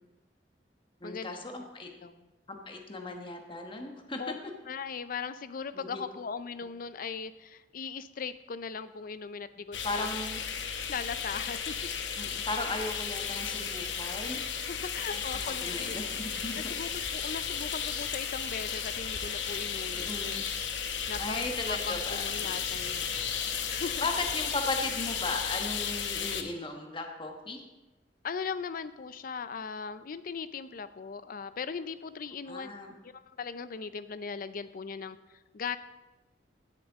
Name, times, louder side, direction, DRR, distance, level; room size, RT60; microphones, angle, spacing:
voice 1, 1.0-1.9 2.5-4.3 5.7-6.0 9.8-10.4 12.2-14.5 15.1-16.8 19.9-20.4 21.2-22.5 24.0-27.6 32.5-32.9, left 2 dB, 30° left, 3 dB, 1.2 m, -36 dB
voice 2, 4.7-10.1 10.9-11.8 14.7-16.0 16.7-20.1 21.1-21.4 21.7-23.1 23.7-24.1 28.2-32.7 33.0-35.2 35.5-35.8, left 5 dB, 50° left, 13 dB, 0.5 m, -38 dB
sound 1, 9.7-26.4, left 7 dB, 90° left, 0.9 m, -34 dB
16.0 x 6.7 x 3.6 m, 1.1 s
head